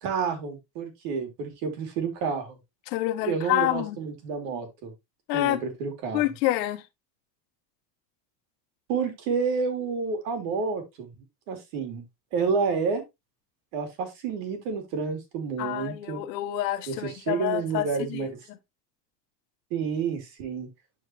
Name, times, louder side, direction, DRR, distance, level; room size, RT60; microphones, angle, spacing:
voice 1, 0.0-2.6 3.2-4.9 5.3-6.2 8.9-11.1 11.5-12.0 12.3-13.0 13.7-16.2 16.9-18.3 19.7-20.7, right 5 dB, 80° right, 2.8 m, -29 dB
voice 2, 2.9-4.0 5.3-5.6 6.1-6.8 15.6-18.6, left 15 dB, 90° left, 1.1 m, -28 dB
11.5 x 4.7 x 2.9 m
supercardioid pair, 90°, 49 cm